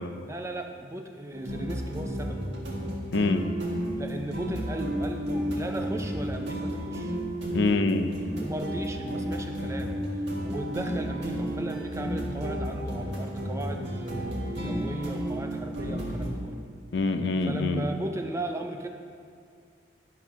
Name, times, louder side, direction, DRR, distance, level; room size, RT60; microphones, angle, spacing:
voice 1, 0.2-2.4 4.0-7.2 8.3-16.6 17.4-18.9, right 1 dB, 15° right, 4 dB, 0.5 m, -36 dB
sound 1, 1.3-16.3, equal, 75° right, 1.7 m, -32 dB
voice 2, 3.1-3.5 7.5-8.1 16.9-17.9, left 3 dB, 70° left, 8 dB, 0.5 m, -25 dB
11.5 x 4.2 x 5.6 m, 2.2 s
head